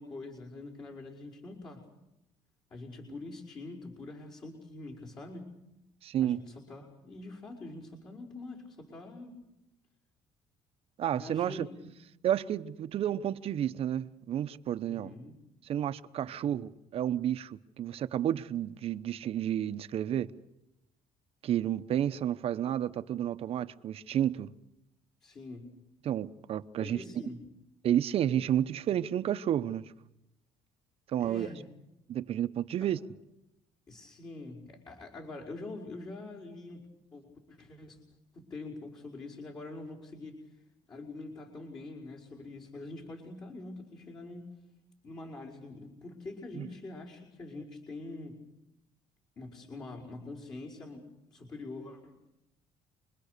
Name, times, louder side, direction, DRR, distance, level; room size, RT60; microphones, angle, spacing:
voice 1, 0.0-1.8 2.7-5.6 6.2-9.4 11.1-11.8 14.9-15.4 16.2-16.5 25.2-25.7 26.8-27.5 31.2-31.7 32.8-32.9 33.9-38.0 38.3-40.4 40.9-44.5 45.0-48.4 49.4-52.3, left 2 dB, 40° left, 5.3 m, -45 dB
voice 2, 6.0-6.4 11.0-11.7 12.2-15.1 15.7-20.3 21.4-24.5 26.0-27.0 27.8-29.9 31.1-31.5 32.1-33.0 46.5-46.7, right 10 dB, 55° right, 0.9 m, -31 dB
28.0 x 22.0 x 6.7 m
cardioid pair, 115°, 12 cm